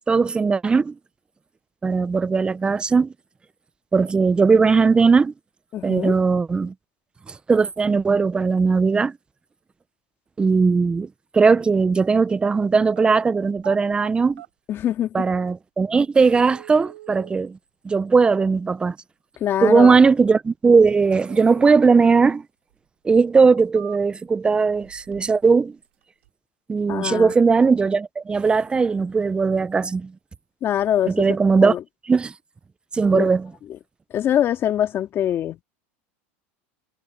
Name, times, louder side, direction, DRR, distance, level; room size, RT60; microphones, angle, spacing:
voice 1, 0.1-1.0 1.8-3.1 3.9-5.3 5.8-6.7 7.3-9.2 10.4-14.4 15.1-17.6 17.8-19.0 19.6-22.4 23.0-25.8 26.7-30.1 31.1-31.7 32.1-32.3 32.9-33.5, right 4 dB, 15° right, 0.5 m, -18 dB
voice 2, 5.7-6.1 14.7-15.2 19.4-20.0 26.9-27.3 30.6-31.3 31.6-31.8 33.1-33.2 34.1-35.6, left 10 dB, 35° left, 2.3 m, -23 dB
sound 1, 12.8-13.1 13.5-14.5 15.5-15.6 16.3-17.3 21.3-22.3 22.7-22.8 23.4-24.3 24.7-25.4 25.7-26.3, right 16 dB, 85° right, 6.6 m, -43 dB
supercardioid pair, 125°, 7 cm